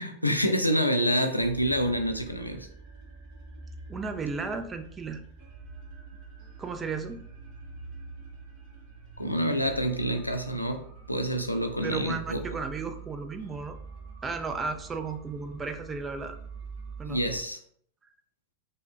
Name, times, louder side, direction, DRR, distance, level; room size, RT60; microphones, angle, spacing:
voice 1, 0.0-2.7 9.2-12.4 17.0-17.6, equal, 90° left, 5 dB, 0.4 m, -27 dB
sound 1, 1.4-17.4, right 5 dB, 40° right, 0.9 m, -45 dB
voice 2, 3.9-5.2 6.6-7.2 11.8-13.8 14.2-16.4 17.0-17.2, right 4 dB, 20° right, 8 dB, 0.3 m, -34 dB
5.0 x 2.1 x 2.4 m, 0.63 s
figure-of-eight pair, 90°, 0 cm